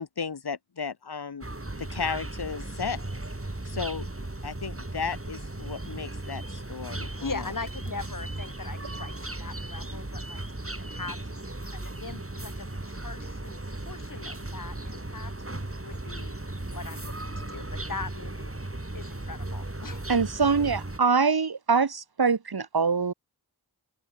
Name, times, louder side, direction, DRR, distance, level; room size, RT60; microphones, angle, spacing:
voice 1, 0.0-1.4 1.8-3.1 3.6-7.4, left 5 dB, 65° left, 1.2 m, -34 dB
sound 1, 1.4-21.0, right 2 dB, 30° right, 6.2 m, -36 dB
voice 2, 7.2-11.2 11.7-15.3 15.8-18.5 18.9-20.0, left 4 dB, 50° left, 2.1 m, -40 dB
voice 3, 20.1-23.1, right 5 dB, 60° right, 1.4 m, -24 dB
open air
wide cardioid pair, 40°, 42 cm